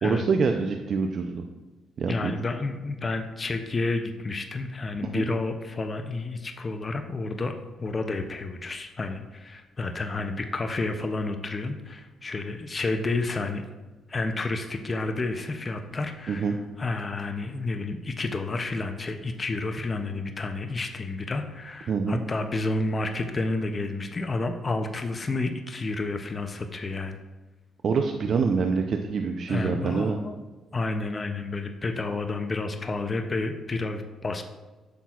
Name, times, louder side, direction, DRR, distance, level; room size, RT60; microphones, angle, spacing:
voice 1, 0.0-1.4 2.0-2.3 5.0-5.2 16.3-16.5 21.9-22.2 27.8-30.2, right 5 dB, 55° right, 5 dB, 0.4 m, -26 dB
voice 2, 2.1-13.6 14.1-27.2 29.5-30.4 30.7-34.4, left 3 dB, 30° left, 6 dB, 0.5 m, -30 dB
8.2 x 6.0 x 2.4 m, 1.2 s
cardioid pair, 90°, 0 cm